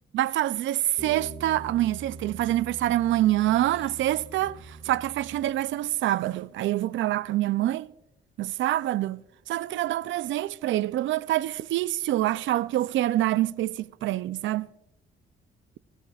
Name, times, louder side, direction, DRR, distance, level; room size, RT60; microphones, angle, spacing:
voice 1, 0.1-7.9 8.4-14.7, right 14 dB, 75° right, 0.4 m, -26 dB
sound 1, 1.0-5.9, right 3 dB, 25° left, 1.9 m, -44 dB
18.0 x 15.0 x 2.4 m
cardioid pair, 90°, 20 cm